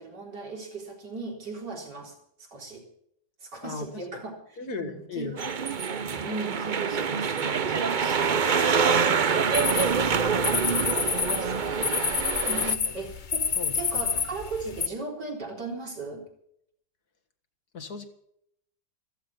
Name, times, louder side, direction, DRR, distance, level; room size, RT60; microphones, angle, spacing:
voice 1, 0.0-2.9 3.4-5.4 6.2-8.5 8.9-16.2, right 3 dB, 70° right, 1 dB, 4.5 m, -38 dB
voice 2, 3.6-4.2 4.6-5.7 12.6-13.0 13.6-14.1 17.7-18.1, left 3 dB, 60° left, 8 dB, 2.3 m, -37 dB
sound 1, 5.4-12.7, right 6 dB, 45° right, 0.6 m, -25 dB
sound 2, 9.5-14.9, left 6 dB, 40° left, 0.7 m, -29 dB
15.0 x 14.5 x 5.9 m, 0.71 s
omnidirectional pair, 1.9 m